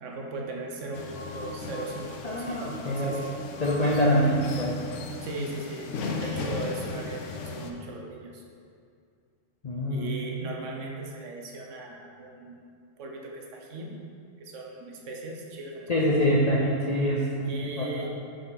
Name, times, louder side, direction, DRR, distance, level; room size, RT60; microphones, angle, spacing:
voice 1, 0.0-3.2 4.0-4.4 5.2-8.4 9.8-12.6 13.0-14.0 14.4-16.2 17.5-18.1, right 2 dB, 70° right, 0 dB, 1.1 m, -37 dB
sound 1, 0.9-7.7, left 4 dB, 75° left, 0.9 m, -37 dB
voice 2, 2.2-3.2 3.6-4.7 9.6-10.1 15.9-17.5 17.8-18.1, equal, 45° left, -4 dB, 0.6 m, -25 dB
6.2 x 4.7 x 4.0 m, 2.3 s
omnidirectional pair, 1.3 m